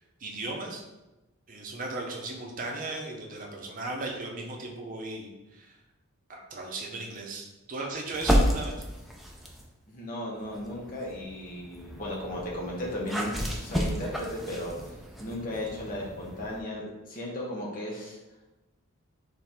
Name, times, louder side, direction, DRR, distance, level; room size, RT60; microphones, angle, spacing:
voice 1, 0.2-0.8 1.5-5.7 6.3-8.8, right 2 dB, 35° right, 0 dB, 0.7 m, -36 dB
sound 1, 8.1-9.7 10.4-16.6, equal, ahead, 0.4 m, -32 dB
voice 2, 9.9-14.9 15.2-18.2, left 1 dB, 40° left, -3 dB, 0.9 m, -36 dB
3.6 x 3.3 x 4.4 m, 1.0 s
head